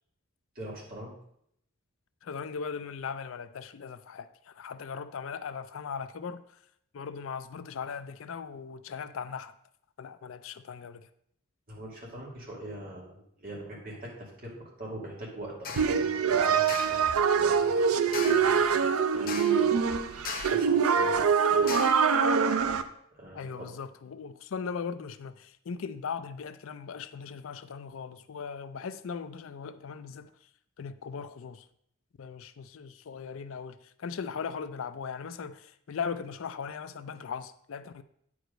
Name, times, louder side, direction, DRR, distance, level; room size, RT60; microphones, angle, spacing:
voice 1, 0.5-1.1 11.7-17.0 17.3-18.7 19.1-21.7 23.1-23.7, right 1 dB, 45° right, 2.6 m, -43 dB
voice 2, 2.2-6.4 6.9-9.5 10.0-11.1 23.3-30.3 30.8-31.6 32.2-38.0, left 6 dB, 65° left, 0.4 m, -38 dB
sound 1, 15.6-16.0 16.7-17.1 18.1-18.6 19.3-19.7 20.2-20.7 21.7-22.1, left 5 dB, 45° left, 0.7 m, -38 dB
sound 2, 15.8-22.8, right 6 dB, 90° right, 0.5 m, -24 dB
9.0 x 4.9 x 5.1 m
head